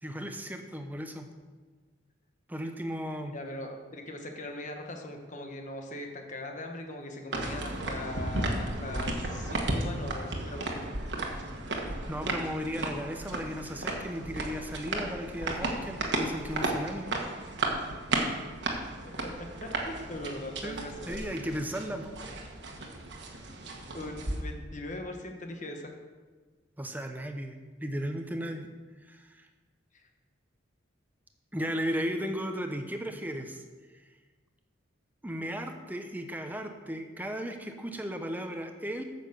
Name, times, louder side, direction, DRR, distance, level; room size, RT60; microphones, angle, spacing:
voice 1, 0.0-1.3 2.5-3.4 12.1-17.0 20.6-22.1 26.8-27.5 27.8-28.7 29.1-29.5 31.5-33.6 35.2-39.0, equal, 10° right, 5 dB, 0.7 m, -35 dB
voice 2, 3.3-10.9 19.2-21.3 23.9-25.9, left 1 dB, 40° left, 3 dB, 1.2 m, -40 dB
sound 1, 7.3-24.4, right 2 dB, 60° right, 1.4 m, -34 dB
8.9 x 6.7 x 6.7 m, 1.4 s
head